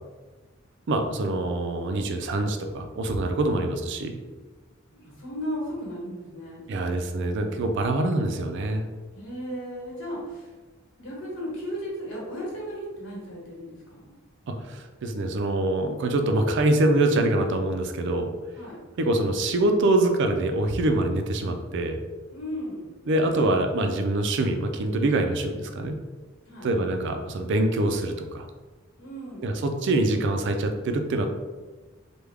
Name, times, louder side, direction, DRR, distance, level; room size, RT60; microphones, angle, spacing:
voice 1, 0.9-4.2 6.7-8.9 14.5-18.3 19.0-22.0 23.1-26.0 26.6-28.4 29.4-31.3, right 2 dB, 60° right, 6 dB, 0.4 m, -25 dB
voice 2, 4.9-6.9 9.1-10.5 11.0-14.1 18.6-18.8 22.3-22.9 26.4-26.7 29.0-29.5, equal, 65° left, -5 dB, 1.3 m, -35 dB
3.4 x 2.2 x 3.4 m, 1.3 s
head